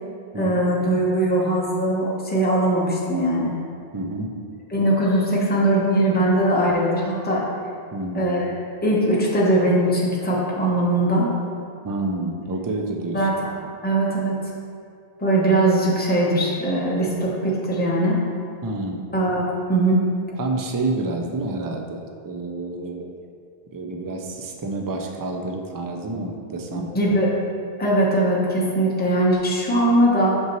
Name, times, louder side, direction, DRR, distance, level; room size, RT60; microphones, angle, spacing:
voice 1, 0.4-3.5 4.7-7.4 8.1-8.5 8.8-11.3 13.1-13.3 13.8-14.4 15.2-18.2 19.1-20.0 26.7-27.3 27.8-30.4, right 1 dB, 10° left, -5 dB, 0.8 m, -20 dB
voice 2, 3.9-4.3 7.9-8.3 11.8-13.7 18.6-19.0 20.4-23.1 23.7-26.9, right 2 dB, 35° right, 2 dB, 0.3 m, -29 dB
6.1 x 5.6 x 3.0 m, 2.3 s
omnidirectional pair, 1.0 m